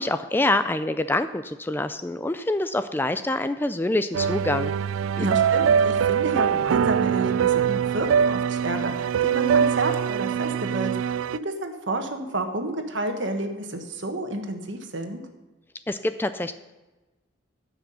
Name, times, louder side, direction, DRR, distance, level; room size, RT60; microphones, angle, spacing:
voice 1, 0.0-4.7 5.2-5.3 15.9-16.5, left 2 dB, 10° left, 10 dB, 0.3 m, -26 dB
sound 1, 4.1-11.4, right 8 dB, 90° right, 0.3 m, -23 dB
voice 2, 5.2-11.1 11.4-15.2, right 2 dB, 65° right, 5 dB, 1.5 m, -30 dB
14.0 x 6.0 x 6.9 m, 1.1 s
head